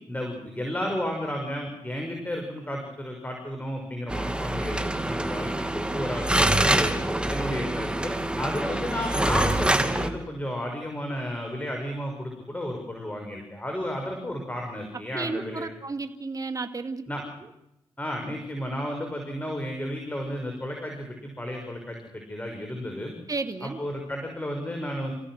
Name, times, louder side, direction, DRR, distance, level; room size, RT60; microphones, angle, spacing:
voice 1, 0.1-6.9 7.3-15.7 17.1-17.2 18.0-23.1 23.6-25.1, equal, 15° left, 2 dB, 6.2 m, -33 dB
sound 1, 4.1-10.1, right 1 dB, 10° right, 2.7 m, -25 dB
voice 2, 15.1-17.0 23.3-23.8, right 3 dB, 35° right, 7 dB, 2.2 m, -32 dB
28.5 x 16.5 x 6.5 m, 0.83 s
supercardioid pair, 55°, 10 cm